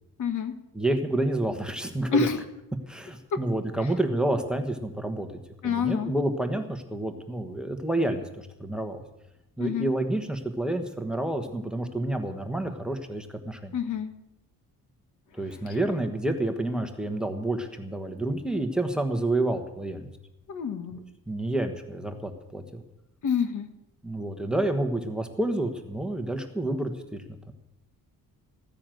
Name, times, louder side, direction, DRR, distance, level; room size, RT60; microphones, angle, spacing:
voice 1, 0.2-0.5 2.1-2.4 5.6-6.1 9.6-9.9 13.7-14.1 15.7-15.8 20.5-21.0 23.2-23.7, left 6 dB, 55° left, 8 dB, 1.6 m, -27 dB
voice 2, 0.7-2.2 2.9-5.3 5.6-9.0 9.6-13.7 15.3-20.1 21.3-22.8 24.0-27.5, right 1 dB, ahead, 6 dB, 1.3 m, -29 dB
15.0 x 9.7 x 7.7 m, 0.90 s
cardioid pair, 155°, 36 cm